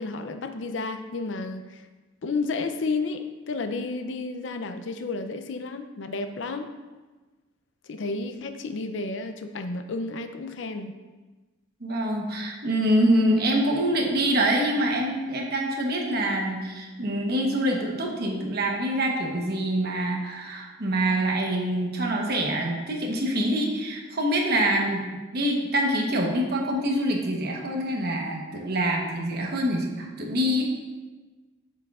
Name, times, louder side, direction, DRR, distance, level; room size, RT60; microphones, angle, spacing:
voice 1, 0.0-1.9 2.2-6.7 7.8-10.9, left 3 dB, 70° left, 8 dB, 0.5 m, -31 dB
voice 2, 11.8-25.1 25.3-30.7, right 1 dB, 55° right, 0 dB, 1.1 m, -25 dB
7.9 x 7.0 x 2.4 m, 1.3 s
head